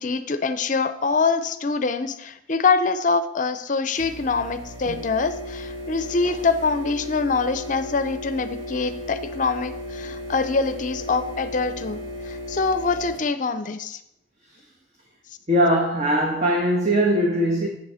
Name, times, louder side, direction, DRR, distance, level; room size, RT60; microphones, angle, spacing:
voice 1, 0.0-12.0 12.2-14.0, left 4 dB, 45° left, 11 dB, 0.6 m, -24 dB
sound 1, 4.0-13.2, left 1 dB, 90° right, 2.0 m, -35 dB
voice 2, 15.5-17.7, equal, 35° right, 0 dB, 1.1 m, -20 dB
8.0 x 7.0 x 5.6 m, 0.79 s
head